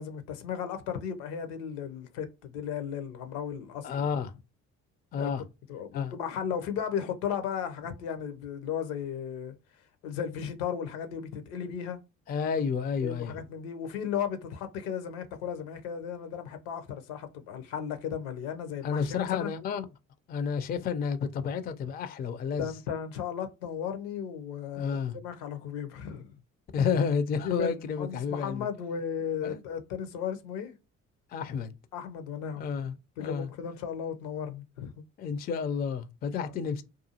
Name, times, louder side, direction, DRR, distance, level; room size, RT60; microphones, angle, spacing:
voice 1, 0.0-4.1 5.1-5.3 5.7-9.5 10.0-12.0 13.0-19.5 22.6-26.3 27.4-30.7 31.9-32.7 33.2-35.0 36.4-36.5, left 8 dB, 70° left, 0.6 m, -35 dB
voice 2, 3.8-4.4 5.1-5.4 5.9-6.1 12.3-13.4 18.8-19.9 20.3-22.7 24.7-25.2 26.7-28.7 29.4-29.6 31.3-31.7 32.6-33.5 35.2-36.8, left 6 dB, 25° left, 0.4 m, -30 dB
2.4 x 2.4 x 2.7 m
hypercardioid pair, 50°, 39 cm